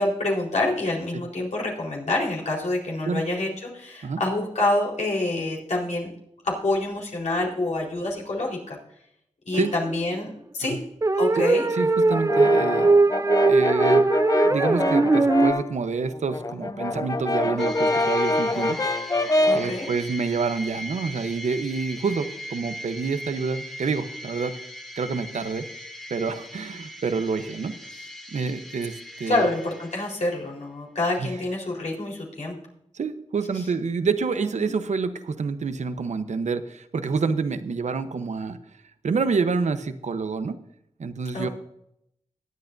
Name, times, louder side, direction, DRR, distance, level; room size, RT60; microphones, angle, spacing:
voice 1, 0.0-6.1 6.4-8.8 9.5-10.8 11.2-11.6 19.5-19.9 29.3-32.6 34.4-34.7 41.3-41.5, left 2 dB, 75° left, -3 dB, 4.2 m, -27 dB
sound 1, 9.5-9.9 11.0-15.5, right 3 dB, 25° right, 0.7 m, -20 dB
voice 2, 11.7-12.9 13.4-14.1 14.4-24.5 25.0-25.7 26.1-28.0 28.3-29.5 31.2-31.4 32.9-38.6 39.0-40.6 41.0-41.5, right 4 dB, 75° right, 10 dB, 0.9 m, -28 dB
Brass instrument, 12.1-15.7 16.1-19.7, left 2 dB, 30° left, 0.6 m, -25 dB
sound 2, 17.6-30.4, left 1 dB, 5° left, 2.3 m, -39 dB
21.5 x 8.6 x 2.6 m, 0.75 s
cardioid pair, 50°, 12 cm